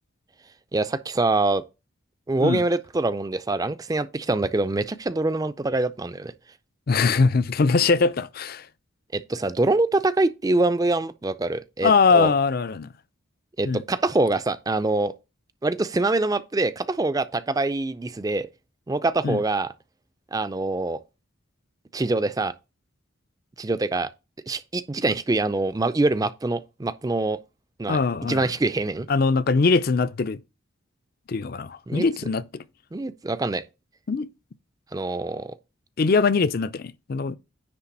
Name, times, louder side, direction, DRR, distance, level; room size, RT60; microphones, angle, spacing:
voice 1, 0.7-1.6 2.3-6.3 9.1-12.3 13.6-15.1 15.6-18.5 18.9-19.7 20.3-21.0 21.9-22.5 23.6-24.1 24.5-27.4 27.8-29.1 31.9-32.0 32.9-33.6 34.9-35.5, right 2 dB, 20° right, 0.4 m, -24 dB
voice 2, 6.9-8.7 11.8-12.9 13.6-13.8 19.2-19.4 27.9-28.5 29.1-30.4 31.3-32.6 34.1-34.3 36.0-37.4, left 4 dB, 45° left, 0.4 m, -22 dB
9.8 x 3.3 x 5.9 m
head